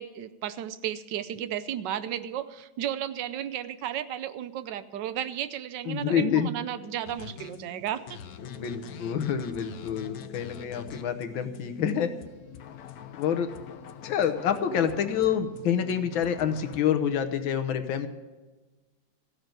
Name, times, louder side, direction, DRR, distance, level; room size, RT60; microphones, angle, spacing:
voice 1, 0.0-8.2, right 10 dB, 75° right, 13 dB, 1.3 m, -34 dB
voice 2, 5.9-6.5 8.4-12.1 13.2-13.5 14.0-18.1, left 8 dB, 90° left, 9 dB, 1.7 m, -27 dB
sound 1, 7.1-16.8, left 8 dB, 65° left, 1.0 m, -44 dB
14.5 x 6.6 x 9.1 m, 1.2 s
omnidirectional pair, 2.1 m